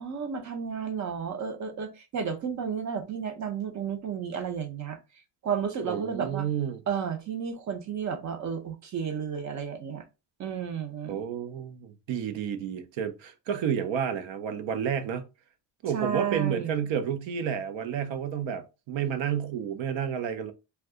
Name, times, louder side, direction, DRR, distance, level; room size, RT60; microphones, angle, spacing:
voice 1, 0.0-5.0 5.4-6.5 6.9-10.0 10.4-11.2 15.9-16.8, right 7 dB, 40° right, 0.5 m, -32 dB
voice 2, 5.8-6.8 11.1-15.2 15.8-20.5, right 8 dB, 85° right, 0.6 m, -30 dB
2.6 x 2.3 x 3.5 m
cardioid pair, 160°, 45 cm